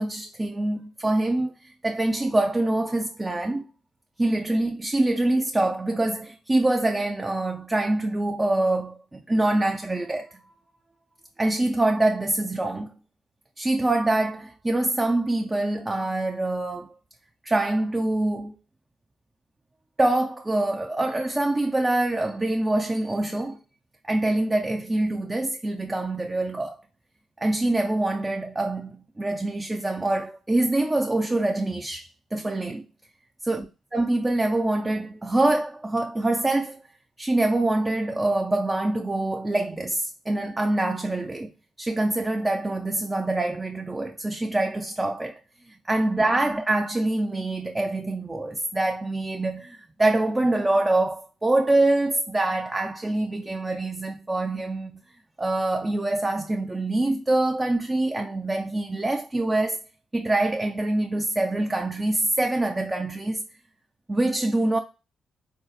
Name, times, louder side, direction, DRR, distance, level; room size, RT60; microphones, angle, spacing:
voice 1, 0.0-3.6 4.2-10.5 11.4-12.9 13.6-16.9 17.4-18.6 20.0-23.6 24.0-26.8 27.4-32.8 33.5-33.7 33.9-36.8 37.2-41.5 41.8-45.4 45.7-55.0 55.4-59.8 60.1-63.4 64.1-64.8, right 2 dB, 20° right, 0.4 m, -25 dB
3.8 x 2.6 x 2.4 m
supercardioid pair, 50°, 0 cm